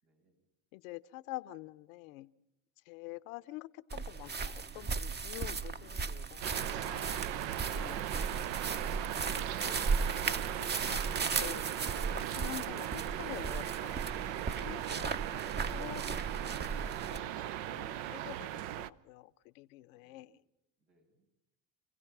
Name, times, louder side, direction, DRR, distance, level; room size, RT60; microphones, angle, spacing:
voice 1, 0.0-0.4 19.8-20.4 20.8-21.3, right 2 dB, 90° right, 1 dB, 6.0 m, -73 dB
voice 2, 0.7-2.3 2.9-8.1 9.3-10.3 10.6-12.1 12.4-16.6 17.1-18.6 19.0-20.4, left 17 dB, 80° left, 15 dB, 0.8 m, -48 dB
sound 1, 3.9-17.2, right 5 dB, 25° right, 0.9 m, -36 dB
sound 2, 6.4-18.9, right 12 dB, 70° right, 0.7 m, -38 dB
27.0 x 16.5 x 6.0 m, 0.92 s
supercardioid pair, 90°, 40 cm